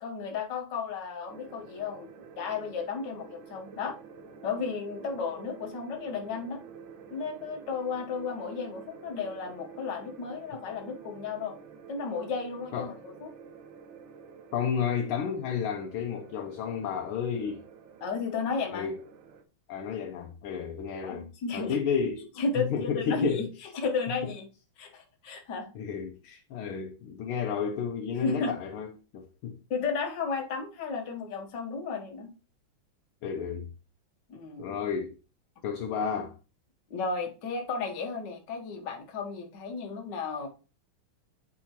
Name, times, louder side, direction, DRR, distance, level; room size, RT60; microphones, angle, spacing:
voice 1, 0.0-4.0 4.4-6.6 7.1-11.6 11.9-13.3 18.0-18.9 21.0-21.8 22.4-23.4 23.8-24.4 24.8-25.7 28.2-28.5 29.7-32.3 34.3-34.8 36.9-40.5, left 4 dB, 60° left, 1.7 m, -33 dB
sound 1, 1.3-19.4, right 6 dB, 75° right, 1.5 m, -49 dB
voice 2, 14.5-17.6 18.7-18.9 19.7-21.3 21.5-22.3 22.6-23.5 24.2-24.3 25.8-29.6 33.2-33.7 34.6-35.2 35.6-36.4, left 7 dB, 90° left, 1.6 m, -32 dB
8.4 x 4.7 x 2.9 m
omnidirectional pair, 2.3 m